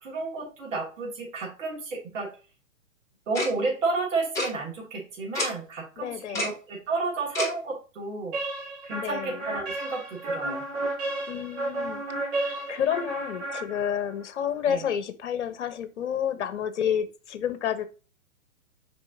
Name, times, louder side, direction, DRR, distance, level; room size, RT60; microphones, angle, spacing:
voice 1, 0.0-2.3 3.3-8.4 8.8-10.6 14.6-14.8, right 3 dB, 65° right, 3.0 m, -31 dB
Tick-tock, 3.3-3.5 4.3-4.5 5.3-5.5 6.3-6.5 7.3-7.5, left 1 dB, 5° left, 3.5 m, -27 dB
voice 2, 6.0-6.5 9.0-9.4 11.3-12.0 12.3-17.9, left 9 dB, 55° left, 1.2 m, -30 dB
sound 1, 8.3-14.2, right 2 dB, 35° right, 3.6 m, -32 dB
6.8 x 5.1 x 2.8 m
figure-of-eight pair, 115°, 41 cm